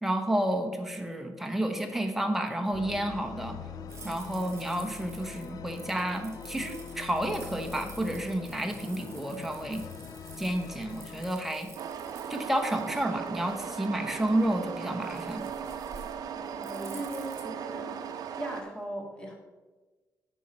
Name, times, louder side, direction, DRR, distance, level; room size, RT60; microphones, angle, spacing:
voice 1, 0.0-3.6 4.0-9.8 10.4-11.7 12.3-15.5, right 1 dB, 5° right, 4 dB, 1.0 m, -30 dB
sound 1, 2.7-11.3, left 7 dB, 70° left, 0.5 m, -43 dB
sound 2, 3.9-17.4, right 4 dB, 45° right, 1.8 m, -51 dB
sound 3, 11.8-18.6, right 7 dB, 70° right, 0.6 m, -37 dB
voice 2, 16.3-18.0 18.4-19.3, right 1 dB, 15° left, 0 dB, 2.0 m, -39 dB
9.2 x 5.9 x 4.3 m, 1.2 s
cardioid pair, 120°, 7 cm